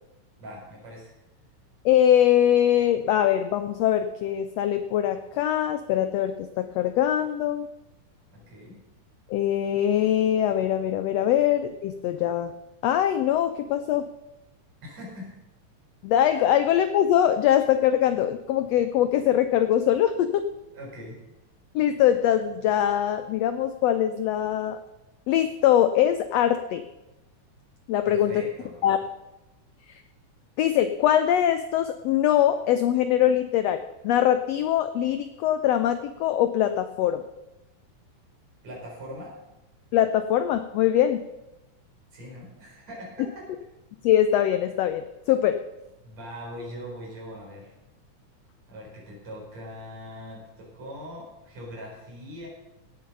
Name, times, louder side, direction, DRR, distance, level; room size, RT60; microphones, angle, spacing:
voice 1, 0.4-1.1 8.3-8.8 14.8-15.4 20.7-21.2 28.1-28.9 38.6-39.4 42.1-43.5 46.0-47.7 48.7-52.5, equal, 55° right, -3 dB, 6.0 m, -41 dB
voice 2, 1.8-7.7 9.3-12.5 12.8-14.0 16.0-20.4 21.7-24.8 25.3-26.8 27.9-28.3 28.8-29.0 30.6-33.8 34.0-37.2 39.9-41.2 44.0-45.6, left 11 dB, 85° left, 10 dB, 1.4 m, -22 dB
17.5 x 8.1 x 5.4 m, 0.97 s
omnidirectional pair, 3.6 m